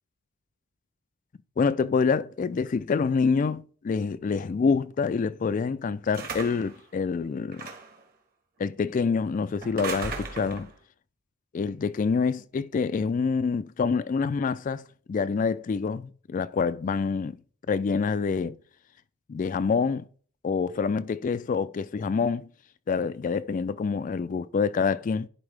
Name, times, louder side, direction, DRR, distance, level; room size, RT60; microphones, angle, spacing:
voice 1, 1.6-7.6 8.6-10.7 11.5-14.8 15.1-17.4 17.7-18.6 19.3-20.0 20.4-22.5 22.9-25.3, left 5 dB, 40° left, 0.3 m, -26 dB
sound 1, 6.1-6.8 7.5-8.0 9.6-10.7, right 4 dB, 45° right, 1.5 m, -36 dB
11.0 x 4.5 x 3.3 m
head